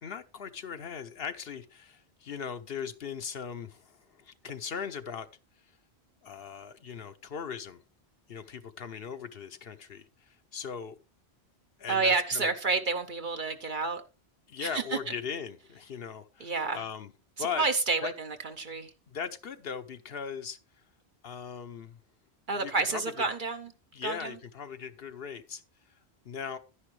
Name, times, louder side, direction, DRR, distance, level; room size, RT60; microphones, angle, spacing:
voice 1, 0.0-5.3 5.6-5.7 6.2-7.8 8.3-11.0 11.8-12.5 14.5-17.1 17.4-17.6 18.0-18.1 19.1-20.6 21.2-22.0 22.5-23.2 23.9-25.6 25.9-26.0 26.2-26.6, left 7 dB, 65° left, 0.9 m, -39 dB
voice 2, 11.9-14.0 14.6-14.7 16.4-16.8 17.4-18.9 22.5-23.7 24.0-24.3, right 4 dB, 50° right, 1.0 m, -29 dB
11.0 x 9.9 x 3.2 m
omnidirectional pair, 1.1 m